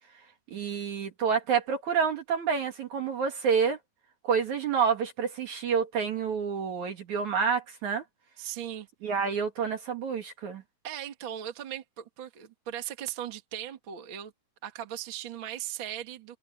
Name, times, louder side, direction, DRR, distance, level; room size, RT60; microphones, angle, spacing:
voice 1, 0.5-3.8 4.2-8.0 9.0-10.6, right 6 dB, 55° right, 2.9 m, -28 dB
voice 2, 8.4-9.2 10.8-14.3 14.6-16.4, right 11 dB, 40° right, 2.3 m, -38 dB
omnidirectional pair, 4.5 m